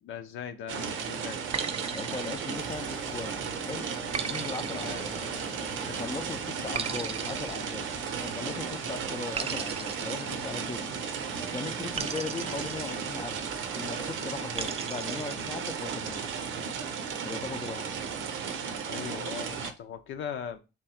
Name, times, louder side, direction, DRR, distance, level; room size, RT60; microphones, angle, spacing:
voice 1, 0.0-1.4 4.7-5.0 18.8-20.6, left 8 dB, 75° left, 0.7 m, -39 dB
sound 1, 0.7-19.7, right 6 dB, 80° right, 0.7 m, -35 dB
sound 2, 1.5-3.2 4.1-5.8 6.7-8.5 9.3-11.1 12.0-13.5 14.6-15.6, right 6 dB, 30° right, 0.4 m, -38 dB
voice 2, 1.9-3.9 4.3-5.2 5.9-7.9 8.2-16.3 17.2-17.9, left 4 dB, 25° left, 0.5 m, -39 dB
sound 3, 2.6-14.6, left 1 dB, ahead, 0.8 m, -49 dB
3.6 x 3.0 x 4.3 m
cardioid pair, 90°, 20 cm